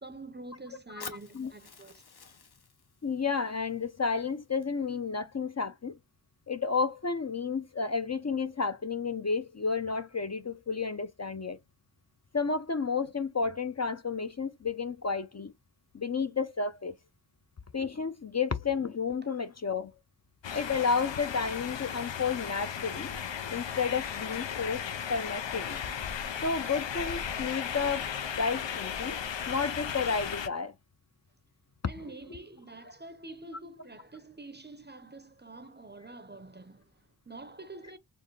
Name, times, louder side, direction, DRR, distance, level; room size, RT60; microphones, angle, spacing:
voice 1, 0.0-2.0 19.2-19.3 31.9-38.0, right 2 dB, 25° right, 0.6 m, -47 dB
Fire, 1.0-5.0, left 5 dB, 60° left, 0.8 m, -50 dB
voice 2, 3.0-6.0 6.5-11.6 12.3-15.5 15.9-17.0 17.7-19.9 20.5-23.1 23.5-25.8 26.4-28.0 28.4-29.2 29.5-30.7 32.0-32.1, left 5 dB, 40° left, 0.5 m, -31 dB
sound 1, 20.4-30.5, left 8 dB, 85° left, 0.6 m, -36 dB
4.4 x 2.8 x 3.1 m
wide cardioid pair, 45°, 43 cm